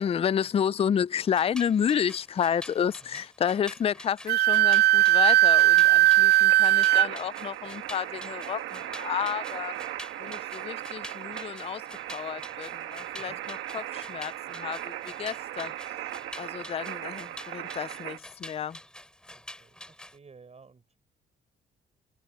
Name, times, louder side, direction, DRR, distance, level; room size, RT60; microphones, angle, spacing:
voice 1, 0.0-9.7 10.2-11.8 12.1-15.7 16.4-18.8, left 8 dB, 30° left, 0.4 m, -30 dB
sound 1, 1.2-20.2, left 1 dB, 5° left, 3.4 m, -47 dB
Wind instrument woodwind instrument, 4.3-7.1, right 15 dB, 55° right, 0.4 m, -19 dB
sound 2, 6.5-18.2, right 13 dB, 85° right, 1.5 m, -38 dB
voice 2, 19.3-20.8, right 5 dB, 35° right, 5.2 m, -54 dB
cardioid pair, 90°, 20 cm